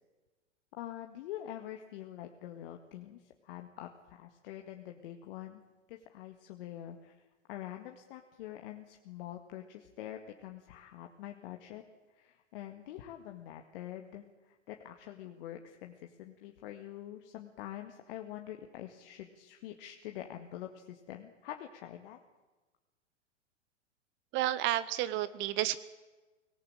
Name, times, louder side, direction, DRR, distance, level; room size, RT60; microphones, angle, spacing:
voice 1, 0.8-5.6 5.9-7.2 7.5-11.8 12.2-22.2, left 12 dB, 50° left, 4 dB, 2.0 m, -45 dB
voice 2, 24.3-25.8, right 13 dB, 30° right, 16 dB, 1.0 m, -31 dB
24.5 x 18.5 x 8.9 m, 1.2 s
figure-of-eight pair, 105°, 37 cm